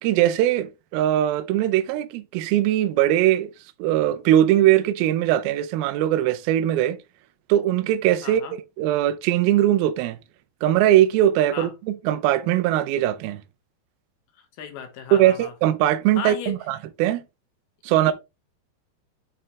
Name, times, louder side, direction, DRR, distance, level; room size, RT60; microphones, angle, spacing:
voice 1, 0.0-3.5 3.8-7.0 7.5-8.4 8.8-10.2 10.6-13.4 15.1-17.2 17.8-18.1, right 12 dB, 80° right, 2.3 m, -20 dB
voice 2, 8.2-8.6 11.5-11.7 14.4-15.5 16.2-16.6 17.9-18.1, left 8 dB, 75° left, 3.0 m, -35 dB
7.4 x 4.8 x 3.3 m
omnidirectional pair, 4.7 m